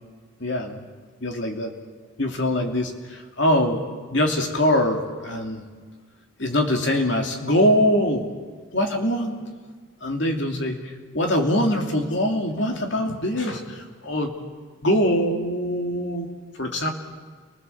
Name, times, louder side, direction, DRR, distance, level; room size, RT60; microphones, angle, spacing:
voice 1, 0.4-0.9 1.2-1.7 2.2-3.8 4.1-5.6 6.4-8.3 8.7-9.4 10.0-14.3 14.8-16.3 16.6-16.9, left 1 dB, 60° left, 2 dB, 2.8 m, -23 dB
29.5 x 19.5 x 7.2 m, 1.5 s
head